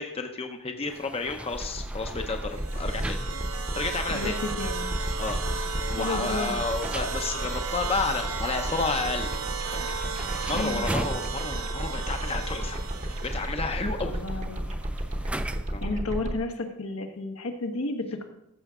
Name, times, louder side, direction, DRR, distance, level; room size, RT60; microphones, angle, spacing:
voice 1, 0.0-3.2 3.7-4.3 5.2-5.4 5.9-9.4 9.7-9.9 10.2-12.8 13.2-14.1 15.7-15.9, left 4 dB, 30° left, 5 dB, 0.7 m, -31 dB
sound 1, 0.8-15.9, right 1 dB, 5° right, 0.3 m, -41 dB
sound 2, 1.5-16.4, right 1 dB, 35° right, 1.0 m, -33 dB
sound 3, 2.5-13.7, right 5 dB, 80° right, 0.9 m, -35 dB
voice 2, 4.1-4.9 5.9-6.6 10.5-10.8 14.0-14.6 15.8-18.2, left 2 dB, 85° left, 4 dB, 1.4 m, -32 dB
14.5 x 7.0 x 3.7 m, 0.84 s
head